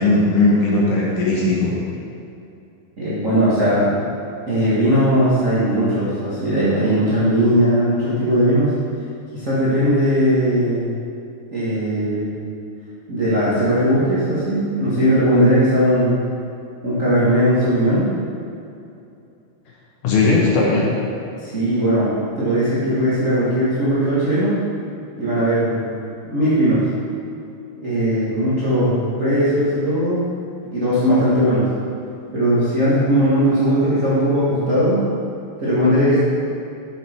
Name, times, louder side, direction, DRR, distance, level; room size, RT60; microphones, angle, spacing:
voice 1, 0.0-1.8 20.0-21.0, left 2 dB, 65° left, -3 dB, 2.4 m, -17 dB
voice 2, 3.0-4.0 4.5-8.7 9.3-11.0 11.5-12.3 13.1-16.2 16.8-18.1 21.4-22.1 22.3-24.6 25.2-25.9 26.2-26.8 27.8-30.2 30.7-31.7 32.3-35.0 35.6-36.2, equal, 35° right, -11 dB, 1.3 m, -18 dB
9.0 x 6.7 x 4.6 m, 2.6 s
omnidirectional pair, 4.4 m